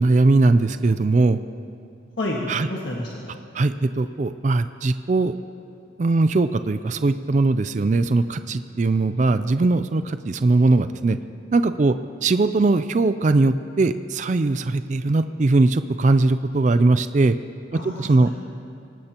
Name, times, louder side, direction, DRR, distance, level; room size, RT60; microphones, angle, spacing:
voice 1, 0.0-1.4 2.5-2.7 3.5-5.3 6.0-11.2 11.5-11.9 12.2-17.4 17.7-18.3, right 3 dB, 40° right, 11 dB, 0.4 m, -20 dB
voice 2, 2.2-3.4 17.7-18.3, left 1 dB, 65° left, -4 dB, 1.7 m, -30 dB
24.5 x 18.5 x 2.9 m, 2.4 s
head